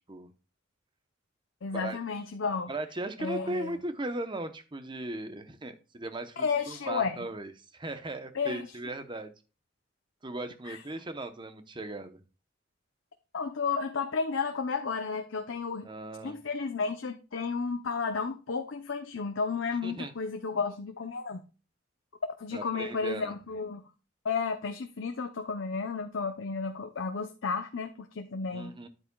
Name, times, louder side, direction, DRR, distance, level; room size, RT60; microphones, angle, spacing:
voice 1, 1.6-2.7 3.2-3.7 6.4-7.2 8.3-8.7 10.7-10.8 13.3-15.9 16.2-21.4 22.4-23.9 24.2-28.7, left 5 dB, 85° left, 5 dB, 0.7 m, -32 dB
voice 2, 2.7-9.3 10.2-12.2 15.8-16.4 19.8-20.1 22.5-23.3 28.5-28.9, right 2 dB, 25° right, 9 dB, 0.9 m, -37 dB
9.8 x 8.3 x 2.3 m, 0.33 s
head